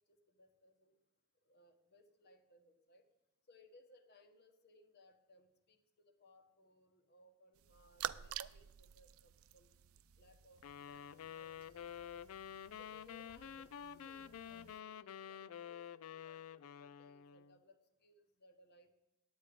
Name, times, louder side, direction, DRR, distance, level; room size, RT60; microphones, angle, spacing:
voice 1, 0.1-1.0 1.4-3.0 3.5-5.8 6.0-9.7 10.2-12.3 12.8-18.9, left 1 dB, 50° left, 7 dB, 1.2 m, -66 dB
sound 1, 7.6-14.8, right 10 dB, 80° right, 0.4 m, -50 dB
sound 2, 10.6-17.6, left 8 dB, 75° left, 0.3 m, -49 dB
9.8 x 8.8 x 5.1 m, 1.0 s
head